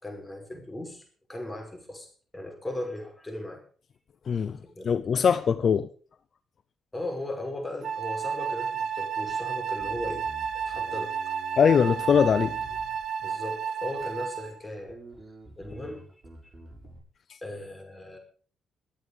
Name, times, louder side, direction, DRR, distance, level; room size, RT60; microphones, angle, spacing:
voice 1, 0.0-2.1 2.3-3.6 4.6-5.0 6.9-10.2 10.5-11.2 13.2-15.0 15.6-16.5 17.4-18.2, left 1 dB, 15° left, 5.9 m, -37 dB
voice 2, 4.3-4.6 4.8-5.9 11.6-12.6, left 7 dB, 50° left, 0.7 m, -22 dB
Wind instrument woodwind instrument, 7.8-14.6, right 7 dB, 60° right, 2.4 m, -32 dB
Bass guitar, 9.8-13.4 14.0-14.5 14.9-17.0, right 2 dB, 30° right, 6.6 m, -48 dB
23.5 x 8.3 x 5.4 m
cardioid pair, 90°, 0 cm